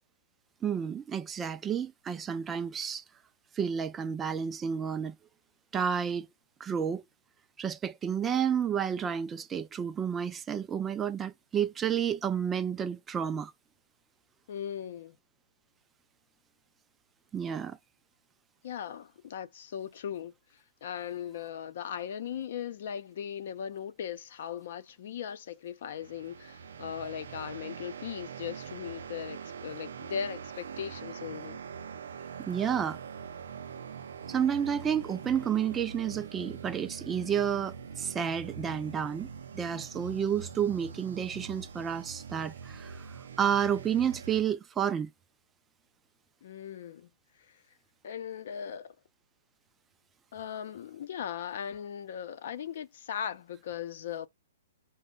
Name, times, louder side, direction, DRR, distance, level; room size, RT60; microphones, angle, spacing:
voice 1, 0.6-3.0 3.5-5.1 5.7-6.3 6.6-7.0 7.6-13.5 17.3-17.8 32.4-33.0 34.3-39.3 39.5-45.1, right 8 dB, 15° right, 0.4 m, -30 dB
voice 2, 14.5-15.2 18.6-20.3 20.8-31.6 46.4-47.1 47.5-47.6 48.0-48.9 50.3-54.3, left 8 dB, 60° left, 0.6 m, -38 dB
sound 1, 25.9-44.4, right 6 dB, 75° right, 0.5 m, -43 dB
5.1 x 2.2 x 3.7 m
hypercardioid pair, 145°, 0 cm